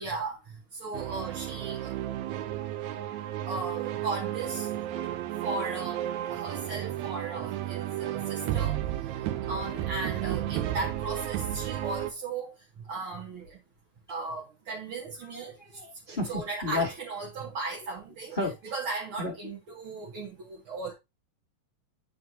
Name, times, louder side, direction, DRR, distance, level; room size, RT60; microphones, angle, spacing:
voice 1, 0.0-1.9 3.5-4.7 5.4-8.8 9.5-12.5 12.9-13.6 14.1-15.5 16.1-18.4 18.7-20.9, right 3 dB, 55° right, 1.9 m, -36 dB
sound 1, 0.9-12.1, right 12 dB, 85° right, 2.0 m, -33 dB
voice 2, 9.1-9.6 15.3-16.9 18.3-18.7 19.2-19.3, left 3 dB, 75° left, 0.4 m, -34 dB
10.0 x 4.6 x 2.7 m
omnidirectional pair, 3.3 m